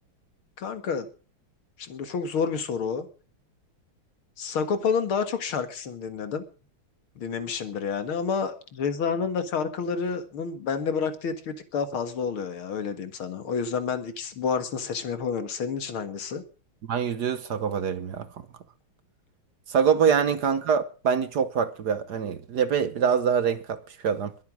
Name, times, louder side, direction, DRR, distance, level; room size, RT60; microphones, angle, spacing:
voice 1, 0.6-1.1 1.8-3.1 4.4-6.4 7.2-16.4, left 6 dB, 80° left, 2.6 m, -29 dB
voice 2, 16.9-18.3 19.7-24.3, right 7 dB, 55° right, 1.4 m, -24 dB
22.0 x 8.4 x 6.2 m
omnidirectional pair, 2.3 m